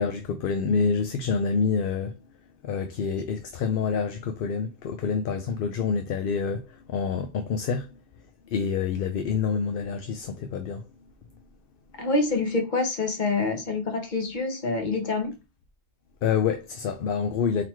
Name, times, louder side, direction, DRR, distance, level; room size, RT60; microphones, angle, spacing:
voice 1, 0.0-2.4 2.6-8.0 8.4-10.9 16.2-17.6, left 6 dB, 65° left, 0.7 m, -27 dB
voice 2, 12.0-15.3, left 3 dB, 50° left, 1.2 m, -26 dB
4.0 x 2.9 x 4.4 m
omnidirectional pair, 1.0 m